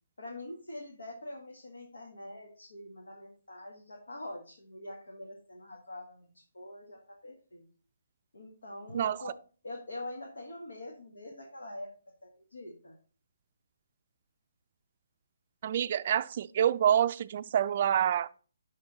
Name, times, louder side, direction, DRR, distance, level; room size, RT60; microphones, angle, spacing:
voice 1, 0.2-7.6 8.3-9.3 9.6-11.9 12.2-13.0, left 1 dB, 80° left, 1.7 m, -44 dB
voice 2, 15.6-18.4, right 9 dB, 45° right, 0.3 m, -27 dB
11.0 x 3.8 x 4.0 m
figure-of-eight pair, 145°, 0 cm